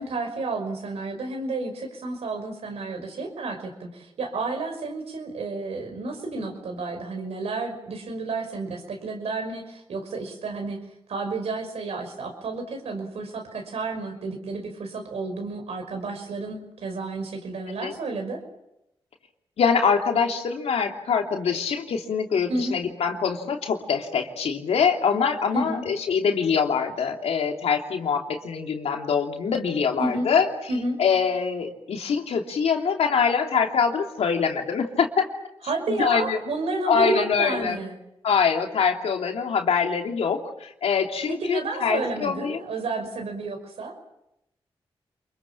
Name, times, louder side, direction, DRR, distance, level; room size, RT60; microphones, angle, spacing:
voice 1, 0.0-10.8 11.1-18.4 22.5-22.8 25.5-25.8 30.0-30.3 30.7-31.0 35.7-38.0 41.3-43.9, right 3 dB, 85° right, 4 dB, 5.6 m, -31 dB
voice 2, 19.6-30.5 31.0-35.3 35.9-36.4 36.9-37.8 38.2-42.6, left 6 dB, 85° left, 3 dB, 2.9 m, -24 dB
28.5 x 23.0 x 7.4 m, 0.85 s
cardioid pair, 45°, 10 cm